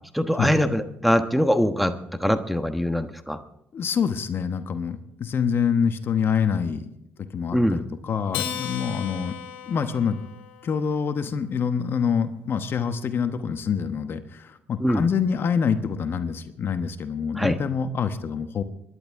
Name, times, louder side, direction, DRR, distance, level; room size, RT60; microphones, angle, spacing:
voice 1, 0.1-1.9 2.2-3.4 7.5-7.8 14.8-15.0 17.3-17.6, equal, ahead, 8 dB, 1.2 m, -22 dB
voice 2, 3.7-6.9 7.2-9.4 9.7-10.2 10.6-18.6, left 6 dB, 55° left, 9 dB, 1.0 m, -26 dB
Acoustic guitar, 8.3-11.0, left 9 dB, 90° left, 2.2 m, -35 dB
23.5 x 11.0 x 3.6 m, 0.79 s
supercardioid pair, 60°, 5 cm